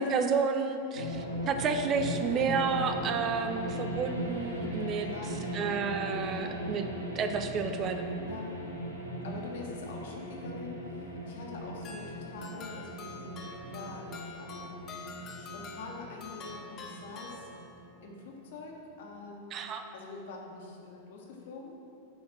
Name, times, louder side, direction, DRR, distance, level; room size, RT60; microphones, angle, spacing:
voice 1, 0.0-5.1 5.5-6.8 7.1-8.2 19.5-19.8, right 5 dB, 30° right, 7 dB, 0.5 m, -31 dB
sound 1, 0.9-18.6, equal, 85° left, 1.2 m, -39 dB
voice 2, 2.7-3.0 5.0-5.9 6.3-6.7 8.2-8.5 9.2-17.5 18.0-21.7, left 3 dB, 55° left, 0 dB, 1.5 m, -45 dB
sound 2, 11.8-18.0, left 4 dB, 30° left, 0.9 m, -47 dB
9.1 x 4.7 x 6.2 m, 2.7 s
figure-of-eight pair, 90°, 0 cm